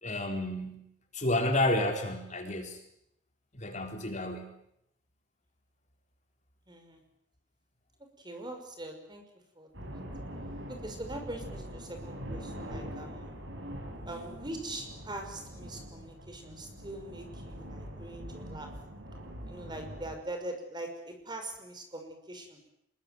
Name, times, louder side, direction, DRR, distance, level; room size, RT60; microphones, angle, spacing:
voice 1, 0.0-0.9 1.1-2.8 3.5-4.5, left 1 dB, 40° left, 4 dB, 3.9 m, -30 dB
voice 2, 6.7-7.0 8.2-9.2 9.5-10.0 10.7-13.3 14.0-18.7 19.5-22.6, right 1 dB, 25° right, 5 dB, 5.7 m, -42 dB
sound 1, 9.7-20.2, equal, 75° right, 7.4 m, -43 dB
26.0 x 22.0 x 9.4 m, 0.76 s
head